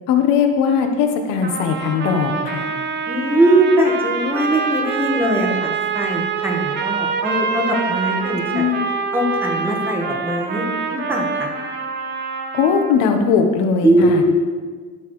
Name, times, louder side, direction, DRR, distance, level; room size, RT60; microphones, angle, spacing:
voice 1, 0.1-2.7 8.5-8.8 12.5-14.2, left 6 dB, 85° left, 5 dB, 1.1 m, -19 dB
sound 1, 1.4-13.1, right 5 dB, 35° right, 0.8 m, -25 dB
voice 2, 3.1-8.7 9.1-11.5 13.8-14.3, right 1 dB, 5° right, 0 dB, 1.2 m, -20 dB
12.0 x 6.9 x 3.1 m, 1.5 s
cardioid pair, 155°, 31 cm